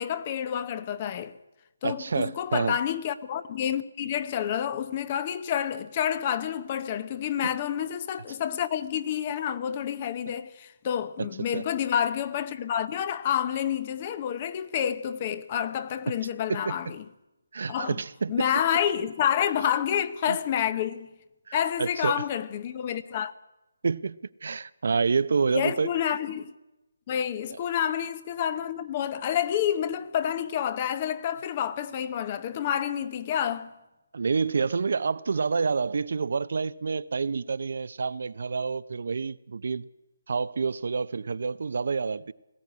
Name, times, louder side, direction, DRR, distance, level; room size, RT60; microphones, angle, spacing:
voice 1, 0.0-1.4 1.8-17.0 17.7-18.0 18.3-21.1 21.5-23.3 25.5-26.5 27.1-33.7, left 9 dB, 30° left, 0.9 m, -29 dB
voice 2, 1.8-2.8 11.5-11.6 16.5-16.7 17.5-18.5 20.3-20.4 21.5-22.2 23.8-25.9 34.1-39.9 40.3-42.3, right 5 dB, 60° right, 0.7 m, -28 dB
19.5 x 14.5 x 9.7 m
hypercardioid pair, 165°, 0 cm